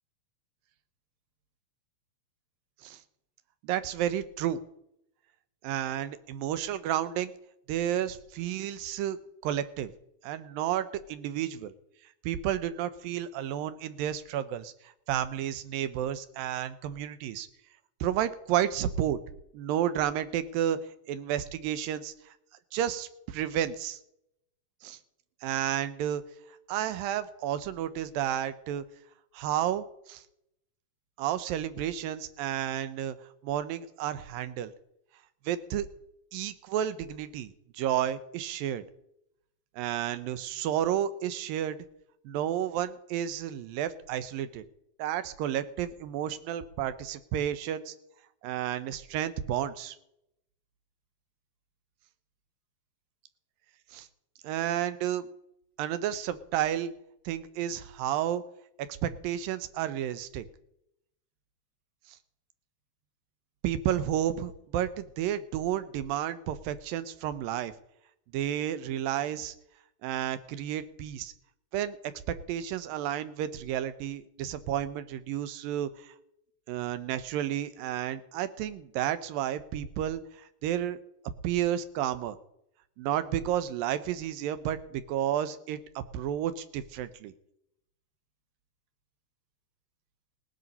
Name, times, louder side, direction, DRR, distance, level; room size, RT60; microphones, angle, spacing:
voice 1, 3.6-4.6 5.6-7.3 7.7-9.2 9.4-9.9 10.2-11.7 12.2-14.7 15.1-17.5 18.0-19.2 19.5-20.8 21.1-22.1 22.7-24.0 24.8-25.0 25.4-26.2 26.7-28.8 29.3-30.2 31.2-33.2 33.4-34.7 35.5-35.9 36.3-38.8 39.8-41.8 42.3-44.6 45.0-47.9 48.4-50.0 53.9-54.1 54.4-55.3 55.8-56.9 57.3-58.4 59.0-60.5 63.6-67.7 68.3-69.5 70.0-71.3 71.7-72.0 72.5-76.1 76.7-80.2 80.6-81.0 81.4-82.4 83.0-87.3, right 11 dB, 85° right, 13 dB, 2.6 m, -31 dB
18.0 x 10.5 x 5.4 m, 0.78 s
omnidirectional pair, 4.0 m